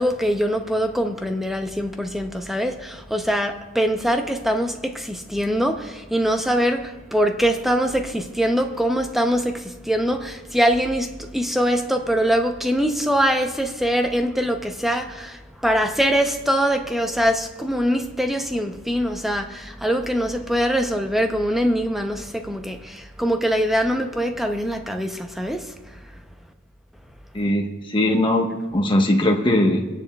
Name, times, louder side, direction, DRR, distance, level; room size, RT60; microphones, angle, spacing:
voice 1, 0.0-26.0, equal, ahead, 0.6 m, -23 dB
voice 2, 27.3-29.9, left 1 dB, 25° left, 1.1 m, -20 dB
29.0 x 10.5 x 2.3 m
head